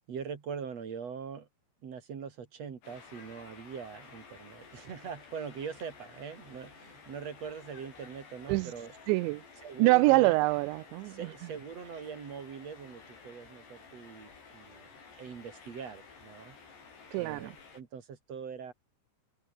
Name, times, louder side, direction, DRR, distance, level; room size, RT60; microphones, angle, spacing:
voice 1, 0.1-1.5 1.8-8.9 9.6-10.4 11.0-16.6 17.1-18.7, right 6 dB, 45° right, 3.0 m, -42 dB
sound 1, 2.8-17.8, left 5 dB, 70° left, 8.6 m, -53 dB
voice 2, 9.1-9.4 9.8-11.2 17.1-17.5, right 22 dB, 90° right, 2.9 m, -25 dB
omnidirectional pair, 5.1 m